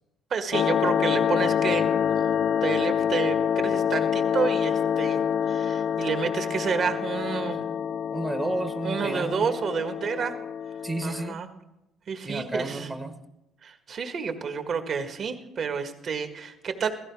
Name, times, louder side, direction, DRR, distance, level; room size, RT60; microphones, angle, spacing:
voice 1, 0.3-2.2 2.6-7.6 8.8-10.3 11.0-11.5 12.1-12.9 13.6-16.9, right 6 dB, 50° right, 5 dB, 1.7 m, -30 dB
sound 1, 0.5-11.3, left 8 dB, 55° left, 0.4 m, -26 dB
voice 2, 8.1-9.5 10.8-11.4 12.2-13.2, right 2 dB, 15° right, 8 dB, 1.1 m, -31 dB
16.0 x 14.5 x 4.8 m, 0.92 s
cardioid pair, 110°, 0 cm